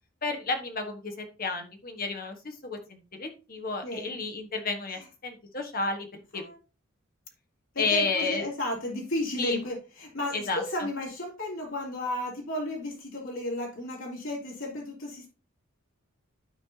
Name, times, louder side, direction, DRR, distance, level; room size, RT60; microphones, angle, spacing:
voice 1, 0.2-6.4 7.8-8.5 9.4-9.6 10.3-10.6, left 4 dB, 45° left, 4 dB, 1.4 m, -31 dB
voice 2, 3.8-4.1 4.9-5.1 6.3-6.6 7.7-15.3, left 1 dB, 75° left, -3 dB, 3.5 m, -33 dB
12.5 x 4.4 x 2.9 m, 0.32 s
head